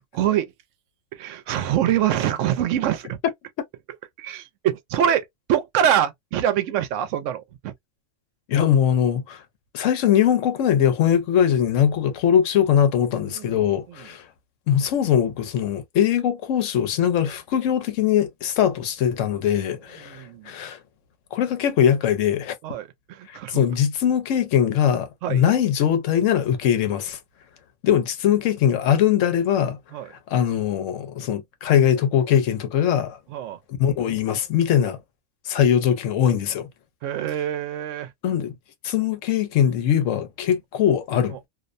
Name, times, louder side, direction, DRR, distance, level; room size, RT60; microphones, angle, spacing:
voice 1, 0.1-0.5 1.1-3.2 4.2-7.7 13.4-13.6 13.9-14.1 20.1-20.5 22.6-23.6 25.2-25.4 29.9-30.1 33.3-33.6 37.0-38.1, right 10 dB, 80° right, 0.9 m, -25 dB
voice 2, 8.5-9.4 9.7-14.2 14.7-20.8 21.3-22.5 23.3-27.2 27.8-29.8 30.3-33.2 33.8-35.0 35.5-36.7 38.2-38.5 38.8-41.4, left 9 dB, 85° left, 1.0 m, -21 dB
2.6 x 2.1 x 2.4 m
omnidirectional pair, 1.3 m